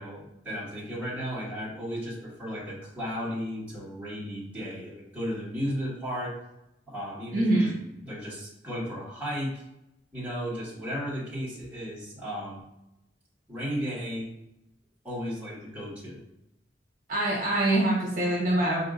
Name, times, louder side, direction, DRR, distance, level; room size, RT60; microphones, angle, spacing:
voice 1, 0.0-6.3 6.9-7.7 8.0-9.6 10.1-12.6 13.5-14.3 15.0-16.2, equal, 10° right, -9 dB, 1.4 m, -34 dB
voice 2, 7.3-7.7 17.1-18.9, right 1 dB, 50° right, -4 dB, 1.3 m, -24 dB
5.2 x 2.7 x 2.5 m, 0.87 s
head